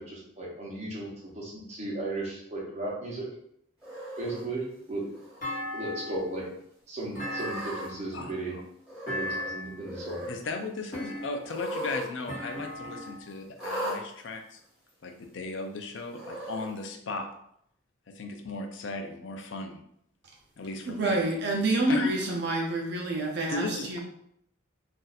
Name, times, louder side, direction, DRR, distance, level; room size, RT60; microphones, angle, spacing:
voice 1, 0.0-3.3 4.2-5.0 5.7-6.4 6.9-8.6 9.1-10.2, right 2 dB, 30° right, 0.9 m, -35 dB
Cat, 3.8-4.4 5.1-5.6 5.9-6.0 7.1-7.9 8.8-9.5 9.8-10.3 11.4-12.1 12.3-12.4 13.6-14.0 14.9-15.0 16.1-16.7, right 1 dB, 5° right, 1.2 m, -37 dB
Thump thud, 5.4-6.3 7.1-8.1 9.1-9.8 10.9-11.6 12.3-13.3, left 1 dB, 40° left, 1.2 m, -37 dB
voice 2, 8.1-8.6 10.3-14.6 15.0-17.3 18.1-19.8 20.6-21.3 21.9-22.1 23.5-24.0, left 3 dB, 60° left, 0.4 m, -36 dB
voice 3, 20.9-24.0, right 1 dB, 55° right, 0.6 m, -27 dB
2.6 x 2.4 x 4.0 m
head